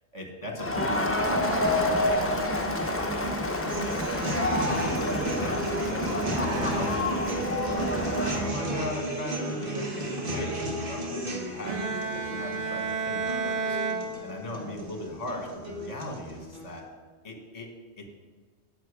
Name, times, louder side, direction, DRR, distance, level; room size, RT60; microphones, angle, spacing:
voice 1, 0.1-2.5 2.8-3.4 3.8-4.4 4.7-10.6 10.9-13.8 14.2-16.8 17.2-18.1, left 1 dB, 35° left, 3 dB, 1.5 m, -37 dB
Crowd, 0.6-8.5, left 1 dB, 15° left, 0.7 m, -28 dB
sound 1, 0.8-16.8, right 1 dB, 50° right, 1.5 m, -35 dB
Bowed string instrument, 11.7-14.8, right 4 dB, 90° right, 1.3 m, -31 dB
10.5 x 8.1 x 4.9 m, 1.4 s
omnidirectional pair, 1.2 m